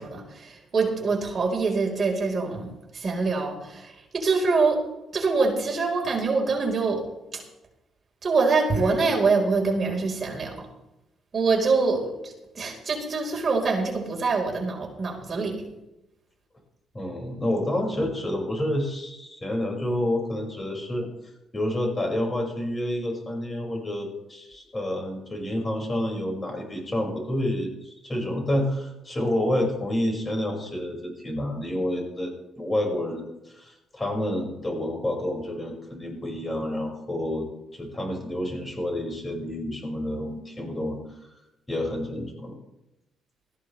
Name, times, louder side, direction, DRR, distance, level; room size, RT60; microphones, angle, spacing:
voice 1, 0.0-4.8 5.1-7.1 7.3-7.4 8.2-10.7 11.3-15.7, right 4 dB, 40° right, 1 dB, 4.5 m, -25 dB
voice 2, 16.9-21.1 21.5-37.5 37.7-41.0 41.7-42.5, left 1 dB, 25° left, 1 dB, 5.9 m, -29 dB
19.5 x 14.5 x 3.4 m, 0.92 s
cardioid pair, 90°, 0 cm